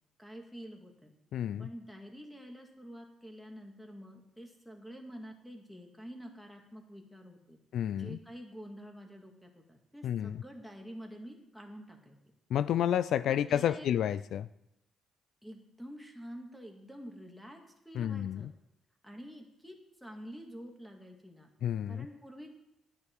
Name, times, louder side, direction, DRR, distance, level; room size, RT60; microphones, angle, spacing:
voice 1, 0.2-1.1 1.6-7.6 7.9-12.2 13.3-13.9 15.4-17.6 17.8-18.5 19.0-21.5 21.9-22.5, equal, 5° left, 3 dB, 2.1 m, -48 dB
voice 2, 1.3-1.7 7.7-8.2 10.0-10.4 12.5-14.5 17.9-18.5 21.6-22.1, left 10 dB, 75° left, 16 dB, 0.3 m, -30 dB
12.0 x 9.8 x 4.7 m, 0.85 s
cardioid pair, 90°, 0 cm